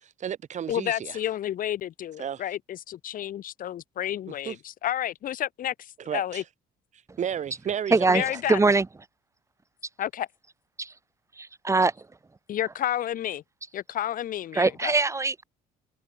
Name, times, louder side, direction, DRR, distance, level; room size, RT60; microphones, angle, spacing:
voice 1, 0.0-1.2 2.2-2.4 4.5-4.6 6.1-6.4 7.2-8.3, right 9 dB, 45° right, 1.5 m, -32 dB
voice 2, 0.7-6.4 8.1-8.6 10.0-10.3 12.5-13.4 13.7-14.9, left 11 dB, 55° left, 1.1 m, -31 dB
voice 3, 7.9-8.2 8.5-8.9 10.8-10.9 11.4-11.9 14.5-15.4, right 3 dB, 15° right, 1.3 m, -22 dB
cardioid pair, 110°, 17 cm